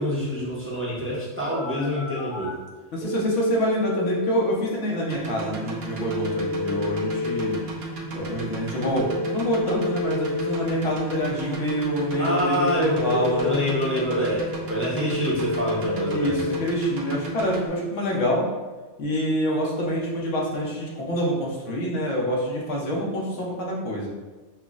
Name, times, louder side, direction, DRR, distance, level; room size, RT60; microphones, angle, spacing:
voice 1, 0.0-2.6 12.2-16.4, equal, 15° right, -7 dB, 0.6 m, -26 dB
Telephone, 1.5-2.5 3.0-4.5 6.0-7.5 9.0-10.5 12.0-13.5 15.0-16.5, left 3 dB, 50° left, 1.1 m, -29 dB
voice 2, 2.9-7.6 8.1-13.5 16.1-18.5 19.0-24.1, equal, 80° left, -3 dB, 1.2 m, -26 dB
sound 1, 5.1-17.7, right 3 dB, 60° right, 0.9 m, -34 dB
5.7 x 2.0 x 2.4 m, 1.3 s
omnidirectional pair, 1.2 m